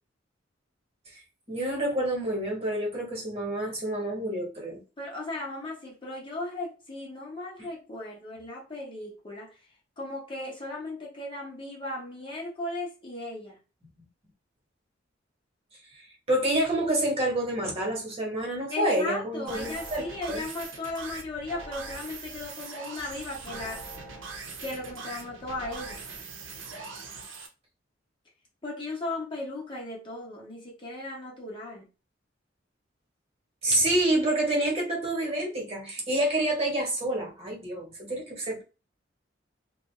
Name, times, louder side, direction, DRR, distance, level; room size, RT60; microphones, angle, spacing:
voice 1, 1.5-4.8 7.6-7.7 16.3-20.0 20.3-20.4 33.6-38.6, right 1 dB, 35° right, 1.1 m, -28 dB
voice 2, 5.0-9.5 10.0-13.6 18.7-23.8 24.6-26.0 28.6-31.8, left 2 dB, 25° left, 0.8 m, -36 dB
sound 1, 19.5-27.5, right 4 dB, 90° right, 0.6 m, -41 dB
2.6 x 2.2 x 3.1 m
head